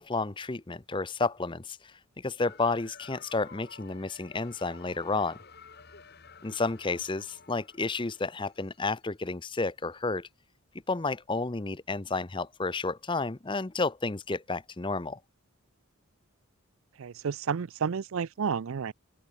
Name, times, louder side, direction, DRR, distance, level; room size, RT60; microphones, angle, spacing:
voice 1, 0.0-5.4 6.4-10.3 10.9-15.2, left 3 dB, 20° left, 0.6 m, -31 dB
sound 1, 2.4-9.0, left 5 dB, 45° left, 1.8 m, -52 dB
voice 2, 17.0-18.9, right 6 dB, 65° right, 0.4 m, -31 dB
open air
head